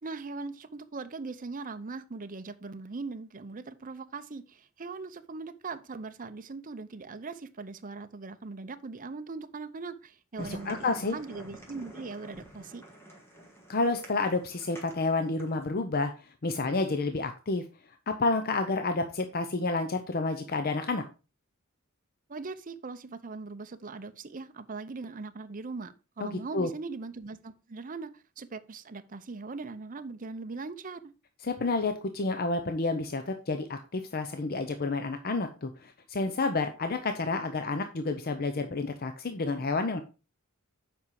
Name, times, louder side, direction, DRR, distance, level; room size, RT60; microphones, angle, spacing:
voice 1, 0.0-12.8 22.3-28.1 28.4-31.1, right 3 dB, 40° right, 0.7 m, -40 dB
voice 2, 10.4-11.2 13.7-16.1 16.4-17.6 18.1-21.0 26.2-26.7 31.4-40.0, left 3 dB, 45° left, 0.7 m, -30 dB
sound 1, 10.4-15.6, right 1 dB, 10° left, 1.9 m, -50 dB
7.4 x 5.5 x 4.7 m
head